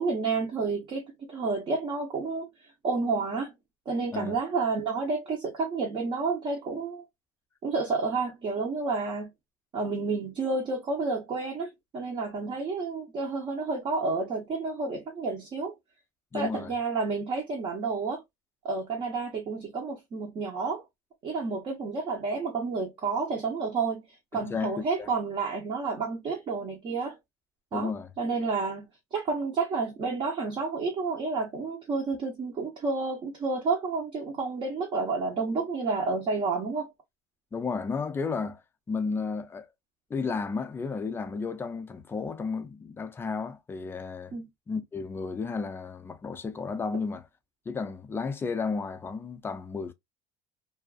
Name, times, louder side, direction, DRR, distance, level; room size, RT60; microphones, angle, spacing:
voice 1, 0.0-2.5 2.8-3.5 3.9-7.0 7.6-9.3 9.7-15.7 16.3-18.2 18.6-20.8 21.2-24.0 24.3-27.1 27.7-27.9 28.2-36.9 44.3-44.5, right 4 dB, 35° right, 0.8 m, -30 dB
voice 2, 16.3-16.7 24.3-25.1 27.7-28.1 37.5-38.6 38.9-39.7 40.1-44.4 44.7-47.3 47.7-49.9, left 4 dB, 15° left, 0.4 m, -33 dB
2.4 x 2.4 x 2.3 m
cardioid pair, 135°, 15 cm